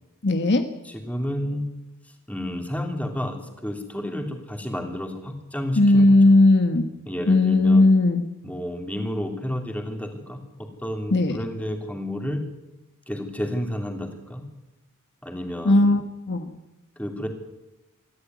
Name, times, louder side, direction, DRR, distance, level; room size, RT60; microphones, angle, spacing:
voice 1, 0.2-0.6 5.8-6.9 7.3-8.2 11.1-11.4 15.6-16.0 16.3-16.5, left 2 dB, 50° left, 8 dB, 1.4 m, -17 dB
voice 2, 0.8-1.7 2.3-6.4 7.1-7.9 8.4-10.4 10.8-12.4 13.1-14.4 15.2-16.0 17.0-17.3, equal, 5° left, 4 dB, 3.2 m, -31 dB
24.0 x 14.5 x 9.5 m, 1.0 s
head